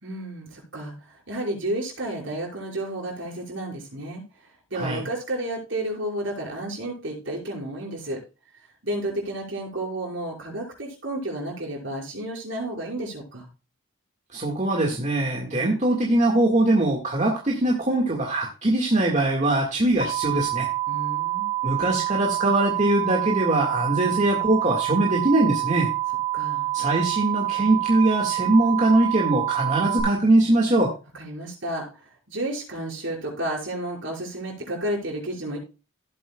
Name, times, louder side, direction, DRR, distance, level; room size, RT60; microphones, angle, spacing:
voice 1, 0.0-4.2 4.7-8.2 8.8-13.5 20.9-21.5 26.3-26.7 31.1-31.9 32.3-35.6, right 1 dB, 60° right, -2 dB, 5.4 m, -31 dB
voice 2, 14.3-20.7 21.6-25.9 26.7-30.9, right 1 dB, 35° right, -1 dB, 1.8 m, -22 dB
sound 1, 20.0-30.0, right 15 dB, 55° left, 3.3 m, -27 dB
17.0 x 7.7 x 2.3 m, 0.31 s
head